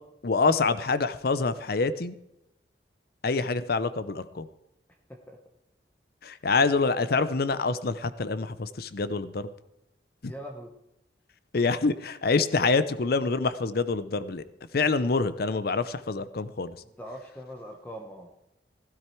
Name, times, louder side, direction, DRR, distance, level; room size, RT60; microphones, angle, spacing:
voice 1, 0.2-2.2 3.2-4.5 6.2-9.5 10.2-10.3 11.5-14.4 14.7-16.8, left 4 dB, 60° left, 14 dB, 0.6 m, -26 dB
voice 2, 10.3-10.7 17.0-18.3, equal, 10° left, 2 dB, 1.1 m, -41 dB
16.0 x 12.0 x 4.5 m, 0.84 s
head